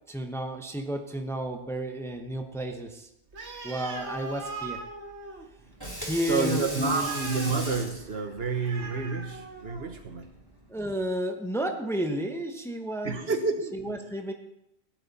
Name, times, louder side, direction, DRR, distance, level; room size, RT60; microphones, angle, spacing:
voice 1, 0.1-3.1 3.6-4.8 6.0-7.1 10.7-13.3 13.7-14.3, right 1 dB, 5° left, 0.9 m, -32 dB
Animal, 3.3-10.0, right 3 dB, 85° right, 1.7 m, -41 dB
Water tap faucet / Sink (filling or washing), 5.6-11.1, equal, 20° right, 3.1 m, -40 dB
voice 2, 6.3-10.3 13.0-14.0, right 4 dB, 65° right, 1.3 m, -29 dB
16.0 x 10.5 x 4.2 m
omnidirectional pair, 1.1 m